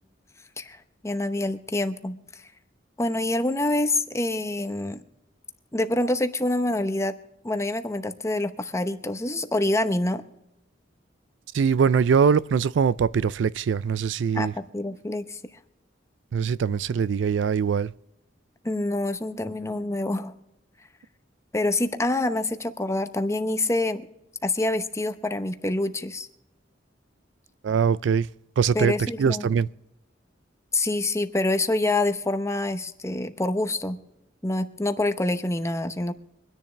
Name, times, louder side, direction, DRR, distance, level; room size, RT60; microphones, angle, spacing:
voice 1, 0.6-2.2 3.0-5.0 5.7-7.2 7.4-10.2 14.3-15.4 18.6-20.4 21.5-24.1 24.4-26.3 28.7-29.5 30.7-34.0 34.4-36.1, left 2 dB, 15° left, 0.8 m, -26 dB
voice 2, 11.5-14.5 16.3-17.9 27.6-28.3 28.6-29.7, right 6 dB, 75° right, 0.4 m, -22 dB
25.0 x 10.5 x 3.3 m
head